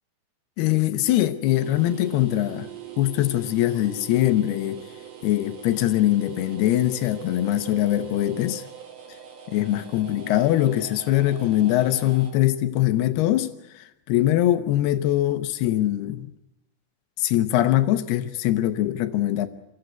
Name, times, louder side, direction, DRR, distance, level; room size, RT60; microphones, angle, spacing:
voice 1, 0.6-2.7 3.0-4.8 5.2-8.6 9.5-13.5 13.8-16.3 17.2-19.5, left 14 dB, 75° left, 2.8 m, -22 dB
sound 1, 1.5-12.3, right 9 dB, 65° right, 3.9 m, -42 dB
25.0 x 15.0 x 8.0 m
omnidirectional pair, 4.9 m